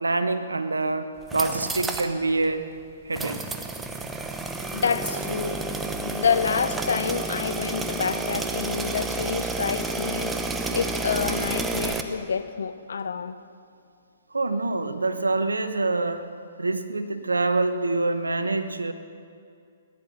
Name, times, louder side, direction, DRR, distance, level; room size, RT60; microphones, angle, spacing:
voice 1, 0.0-2.6 3.0-3.4 14.3-16.3 16.6-18.9, right 3 dB, 85° right, 10 dB, 1.0 m, -26 dB
sound 1, 1.2-2.1 2.4-2.5 3.1-12.0, right 3 dB, 10° right, 1.0 m, -30 dB
voice 2, 4.7-5.6 6.0-10.3 10.7-13.4, left 6 dB, 70° left, 12 dB, 0.8 m, -28 dB
18.0 x 11.0 x 6.4 m, 2.4 s
figure-of-eight pair, 125°, 0 cm